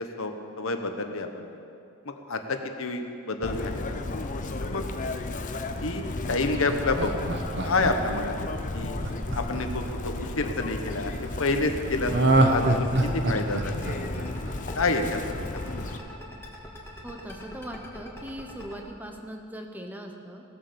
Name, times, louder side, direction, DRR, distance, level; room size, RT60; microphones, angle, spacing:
voice 1, 0.0-1.5 2.0-4.0 4.6-4.8 5.8-7.4 7.6-8.4 8.7-9.0 9.3-14.0 14.7-15.9, left 3 dB, 60° left, 6 dB, 1.1 m, -29 dB
Chirp tweet, 3.4-16.0, left 2 dB, 35° left, 0.7 m, -34 dB
Laughter, 6.3-10.5 12.1-15.1 15.4-15.5, right 2 dB, 50° right, 1.1 m, -26 dB
sound 1, 11.9-18.8, equal, 10° left, 2.0 m, -43 dB
voice 2, 17.0-20.4, equal, 10° right, 2 dB, 1.0 m, -40 dB
18.0 x 7.6 x 7.0 m, 2.5 s
head